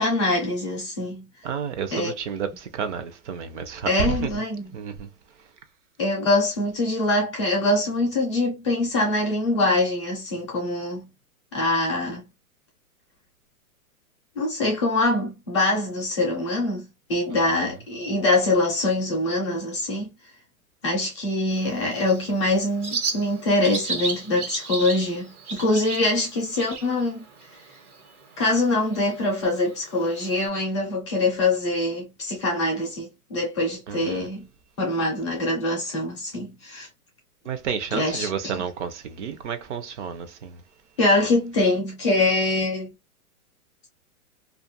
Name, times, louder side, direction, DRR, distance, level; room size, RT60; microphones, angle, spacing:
voice 1, 0.0-1.2 1.9-2.1 3.9-4.7 6.0-11.1 11.5-12.2 14.4-20.1 20.8-27.3 28.4-34.5 34.8-36.9 37.9-38.6 41.0-42.9, left 2 dB, 20° left, 0.4 m, -24 dB
voice 2, 1.4-4.4 4.7-5.1 17.3-17.8 33.9-34.3 37.5-40.6, right 7 dB, 55° right, 0.5 m, -31 dB
Bird, 21.5-30.5, right 4 dB, 80° right, 1.2 m, -35 dB
2.4 x 2.3 x 2.6 m
hypercardioid pair, 155°, 44 cm